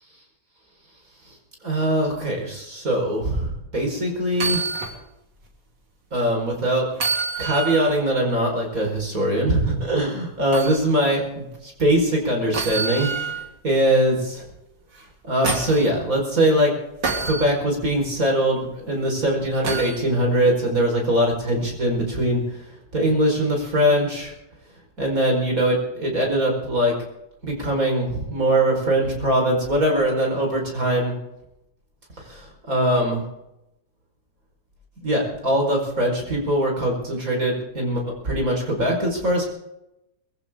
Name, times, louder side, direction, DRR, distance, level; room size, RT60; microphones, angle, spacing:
voice 1, 1.6-4.6 6.1-6.9 7.4-14.4 15.3-16.7 17.2-22.6 22.9-24.3 25.0-26.9 27.4-31.2 32.3-33.2 35.0-39.5, right 1 dB, 50° right, 0 dB, 5.3 m, -22 dB
sound 1, 4.3-5.0 5.4-5.5 6.9-8.0 10.5-10.8 12.5-13.5 15.0-15.9 17.0-17.5 19.6-20.0 21.8-21.9, right 4 dB, 80° right, 3.5 m, -27 dB
22.0 x 15.5 x 3.8 m, 0.87 s
omnidirectional pair, 1.9 m